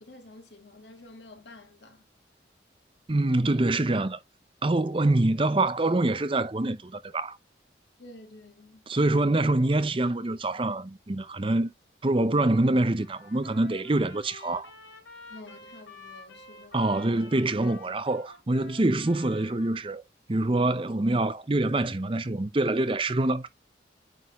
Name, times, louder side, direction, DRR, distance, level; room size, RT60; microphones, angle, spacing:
voice 1, 0.0-2.0 8.0-8.9 15.3-16.9, left 2 dB, 70° left, 1.8 m, -49 dB
voice 2, 3.1-4.2 4.6-7.4 8.9-11.7 12.0-14.7 16.7-20.0 20.3-23.5, right 2 dB, 30° right, 0.6 m, -25 dB
Trumpet, 13.0-19.8, left 3 dB, 85° left, 3.9 m, -49 dB
9.6 x 4.0 x 3.0 m
head